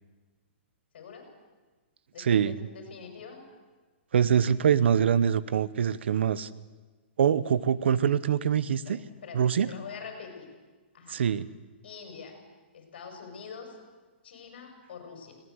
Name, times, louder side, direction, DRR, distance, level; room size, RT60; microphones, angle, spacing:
voice 1, 0.9-1.3 2.1-3.4 8.8-10.5 10.9-11.2 11.8-12.4 12.7-13.8 14.2-15.4, left 6 dB, 55° left, 4 dB, 6.2 m, -44 dB
voice 2, 2.2-2.5 4.1-6.5 7.2-9.0 9.3-9.7 11.1-11.5, right 8 dB, 70° right, 18 dB, 0.9 m, -24 dB
20.5 x 18.5 x 8.1 m, 1.3 s
hypercardioid pair, 175°, 6 cm